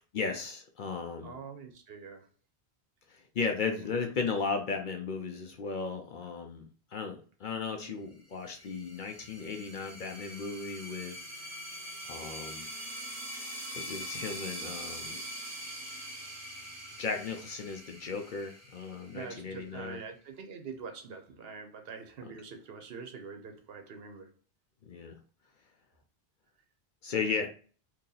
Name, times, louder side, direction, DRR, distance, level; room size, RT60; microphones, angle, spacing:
voice 1, 0.1-1.4 3.1-11.2 12.1-12.7 13.7-15.2 17.0-20.0 24.9-25.2 27.0-27.5, left 5 dB, 55° left, 0.6 m, -35 dB
voice 2, 1.2-2.3 3.7-4.0 4.4-4.5 19.1-24.3 27.2-27.4, right 5 dB, 65° right, 0.8 m, -45 dB
sound 1, 8.3-19.6, equal, 15° right, 0.7 m, -43 dB
2.9 x 2.7 x 3.8 m
omnidirectional pair, 1.1 m